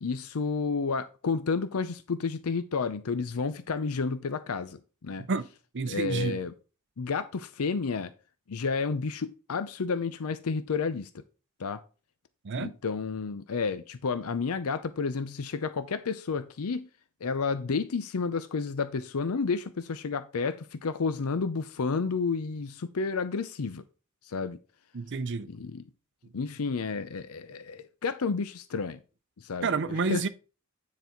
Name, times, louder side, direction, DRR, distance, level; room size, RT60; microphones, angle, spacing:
voice 1, 0.0-5.3 5.9-6.5 7.0-8.1 8.5-11.2 11.6-11.8 12.6-16.9 17.2-23.8 24.2-24.6 25.5-25.8 26.3-29.0 29.4-29.7 30.1-30.2, left 4 dB, 85° left, 0.6 m, -31 dB
voice 2, 5.7-6.4 12.4-12.7 24.9-25.5 29.6-30.3, right 4 dB, 55° right, 0.6 m, -29 dB
9.4 x 4.0 x 4.5 m
head